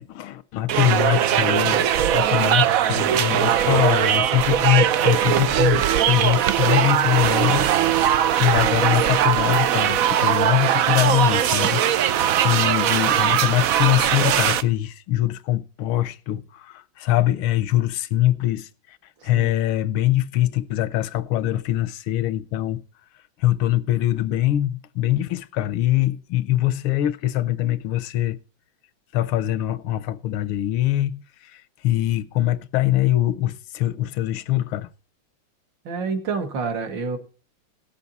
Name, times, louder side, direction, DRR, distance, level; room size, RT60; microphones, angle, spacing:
voice 1, 0.0-1.9 2.1-19.0 19.2-22.8 23.4-28.4 29.1-34.9, left 14 dB, 85° left, 1.6 m, -23 dB
sound 1, 0.7-14.6, right 10 dB, 85° right, 0.7 m, -20 dB
voice 2, 35.9-37.2, right 4 dB, 65° right, 2.2 m, -27 dB
17.5 x 7.2 x 4.0 m
omnidirectional pair, 2.3 m